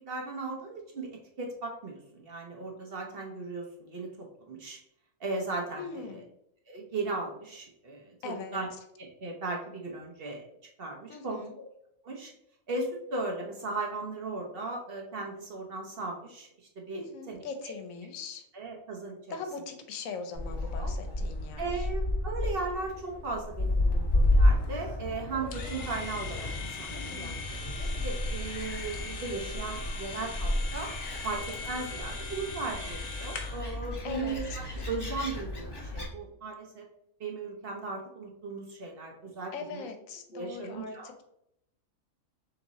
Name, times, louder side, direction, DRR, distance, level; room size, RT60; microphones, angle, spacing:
voice 1, 0.1-1.1 1.4-4.8 5.2-6.2 6.7-8.7 9.0-10.4 10.8-11.6 12.0-12.3 12.7-16.5 16.8-17.7 18.5-19.4 20.4-20.9 21.6-27.3 27.7-30.9 31.2-36.9 37.2-39.8 40.3-41.1, right 3 dB, 55° right, 0 dB, 0.8 m, -37 dB
voice 2, 5.8-6.2 8.2-8.6 11.1-11.5 16.9-18.4 19.3-21.9 26.9-27.4 34.0-34.4 39.5-41.2, left 5 dB, 80° left, 6 dB, 1.0 m, -41 dB
Gull seagull, 20.3-36.1, left 1 dB, 25° left, 0.7 m, -31 dB
sound 1, 25.5-33.7, left 4 dB, 55° left, 0.8 m, -41 dB
3.5 x 3.0 x 4.0 m, 0.78 s
omnidirectional pair, 1.4 m